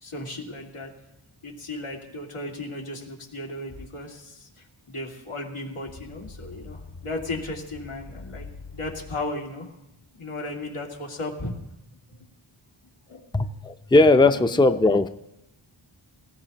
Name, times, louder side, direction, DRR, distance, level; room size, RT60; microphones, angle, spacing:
voice 1, 0.0-0.9 1.4-9.7 10.1-11.5 13.1-13.6 14.4-14.6, left 2 dB, 90° left, -1 dB, 2.4 m, -35 dB
sound 1, 3.7-3.9 5.8-9.2, left 3 dB, 65° left, 1.7 m, -43 dB
voice 2, 13.3-15.1, left 2 dB, 10° left, 10 dB, 0.6 m, -18 dB
18.5 x 16.5 x 2.9 m, 0.91 s
wide cardioid pair, 45°, 49 cm